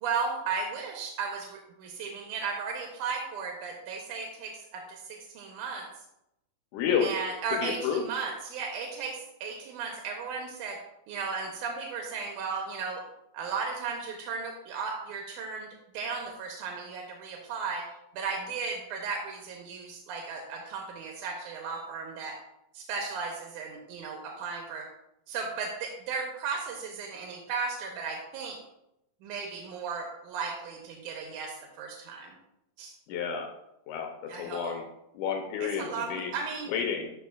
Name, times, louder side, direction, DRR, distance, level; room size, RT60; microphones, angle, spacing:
voice 1, 0.0-5.9 7.0-10.8 11.1-13.0 13.3-15.7 15.9-17.9 18.1-22.4 22.7-24.9 25.3-28.6 29.2-32.3 32.8-32.9 34.3-34.7 35.6-36.7, right 5 dB, 90° right, 1 dB, 2.3 m, -35 dB
voice 2, 6.7-7.1 7.6-8.0 33.1-33.5 33.9-34.8 35.1-36.3 36.7-37.1, left 7 dB, 85° left, 3 dB, 2.2 m, -30 dB
11.5 x 4.8 x 2.3 m, 0.84 s
omnidirectional pair, 3.5 m